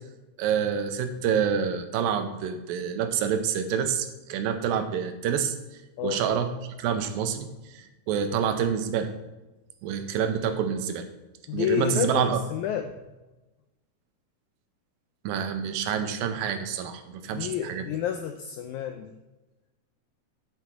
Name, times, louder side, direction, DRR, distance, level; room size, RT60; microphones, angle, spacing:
voice 1, 0.4-5.5 6.0-6.5 6.8-7.5 7.7-9.1 9.8-11.0 11.5-12.4 15.2-17.9, right 7 dB, 90° right, 8 dB, 2.5 m, -27 dB
voice 2, 11.5-12.9 17.3-19.1, left 9 dB, 90° left, 6 dB, 1.7 m, -29 dB
8.1 x 7.2 x 4.6 m, 1.1 s
omnidirectional pair, 4.0 m